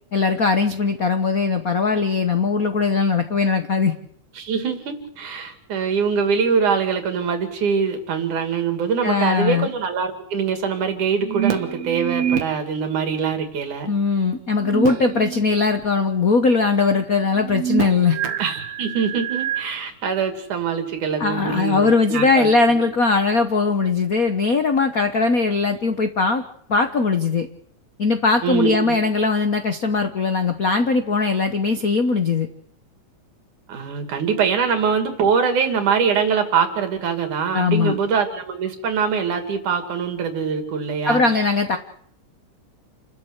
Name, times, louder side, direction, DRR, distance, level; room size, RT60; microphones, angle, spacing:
voice 1, 0.1-3.9 9.0-9.7 13.9-18.2 21.2-26.4 26.7-27.5 28.0-32.5 37.5-38.0 41.0-41.8, left 4 dB, 70° left, 8 dB, 0.8 m, -20 dB
voice 2, 4.4-13.9 18.4-22.5 28.4-29.0 33.7-41.2, right 6 dB, 90° right, 7 dB, 4.0 m, -23 dB
sound 1, 11.2-12.5 14.5-15.5 15.8-15.9 17.3-19.6, right 9 dB, 60° right, 2.4 m, -26 dB
29.0 x 12.5 x 8.1 m, 0.67 s
omnidirectional pair, 3.4 m